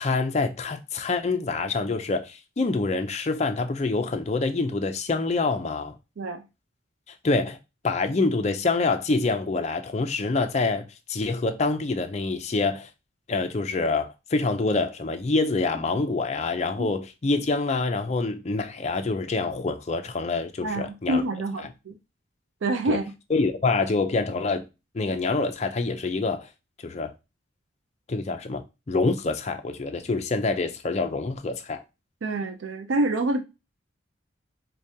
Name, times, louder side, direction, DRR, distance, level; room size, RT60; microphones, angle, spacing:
voice 1, 0.0-5.9 7.2-7.6 7.8-12.9 13.3-21.2 22.9-23.0 23.3-24.7 24.9-26.5 26.8-27.1 28.1-31.8, left 3 dB, 35° left, 0.4 m, -26 dB
voice 2, 20.6-21.9 22.6-23.1 32.2-33.4, right 2 dB, 70° right, 0.4 m, -27 dB
4.8 x 2.2 x 2.7 m
head